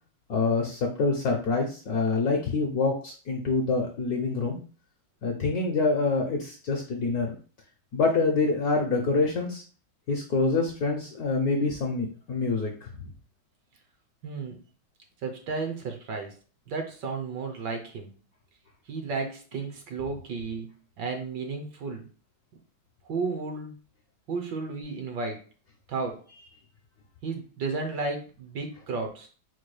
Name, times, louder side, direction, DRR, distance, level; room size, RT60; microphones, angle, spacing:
voice 1, 0.3-4.6 5.2-7.3 7.9-9.6 10.1-12.9, left 3 dB, 65° left, 1 dB, 0.9 m, -26 dB
voice 2, 14.2-14.6 15.2-16.3 16.7-18.1 18.9-22.1 23.0-23.7 24.3-25.4 25.9-26.2 27.2-29.3, right 4 dB, 65° right, 4 dB, 1.3 m, -33 dB
4.4 x 2.3 x 4.7 m, 0.38 s
omnidirectional pair, 2.3 m